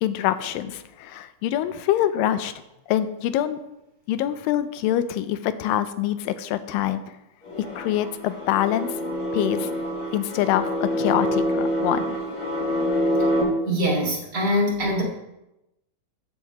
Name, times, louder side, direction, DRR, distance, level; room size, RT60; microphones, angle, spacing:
voice 1, 0.0-2.5 2.9-3.6 4.1-7.0 7.6-8.9 9.3-9.7 10.1-12.1, left 12 dB, 90° left, 12 dB, 2.3 m, -25 dB
sound 1, 7.5-13.4, equal, 45° left, 2.7 m, -26 dB
voice 2, 13.6-15.0, equal, 30° right, -2 dB, 2.5 m, -23 dB
14.0 x 8.0 x 3.0 m, 0.90 s
omnidirectional pair, 3.9 m